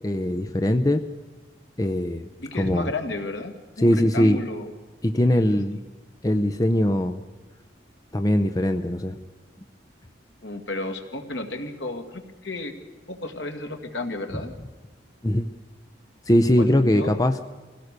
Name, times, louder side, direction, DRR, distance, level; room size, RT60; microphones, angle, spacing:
voice 1, 0.0-1.0 1.8-2.3 2.6-2.9 3.8-4.4 5.0-5.8 6.2-7.2 8.1-9.2 15.2-15.5 16.3-17.4, left 1 dB, 20° left, 8 dB, 0.6 m, -21 dB
voice 2, 2.4-4.7 5.4-5.8 10.4-12.7 13.1-14.5 16.5-17.2, left 2 dB, 80° left, 5 dB, 2.1 m, -33 dB
23.5 x 17.0 x 6.7 m, 1.2 s
head